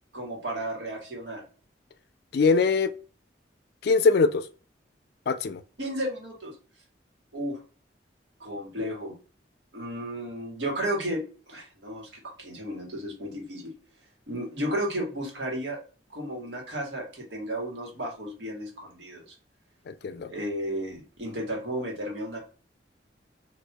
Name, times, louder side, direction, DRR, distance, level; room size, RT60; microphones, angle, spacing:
voice 1, 0.1-1.4 5.8-6.5 7.3-7.6 8.4-9.1 9.7-13.7 14.3-15.8 16.1-19.3 20.2-22.4, right 1 dB, 75° right, 1.5 m, -33 dB
voice 2, 2.3-2.9 3.8-4.5 5.3-5.6 19.9-20.3, left 4 dB, 60° left, 0.3 m, -22 dB
4.4 x 2.6 x 2.2 m
head